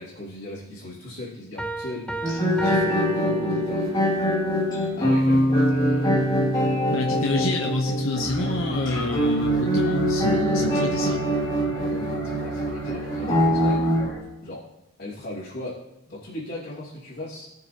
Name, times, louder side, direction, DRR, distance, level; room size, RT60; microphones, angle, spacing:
voice 1, 0.0-3.9 5.0-6.3 10.6-10.8 11.8-13.8 14.4-14.6 15.0-15.8 16.1-17.5, left 1 dB, 45° left, -11 dB, 2.8 m, -37 dB
Piano, 1.6-4.1, right 2 dB, 5° left, 0.7 m, -35 dB
sound 1, 2.2-14.1, equal, 20° left, 2.3 m, -23 dB
voice 2, 6.9-11.2, left 3 dB, 80° left, 1 dB, 0.8 m, -27 dB
sound 2, 8.1-14.2, equal, 50° right, 2.8 m, -36 dB
19.5 x 6.6 x 2.8 m, 0.95 s
head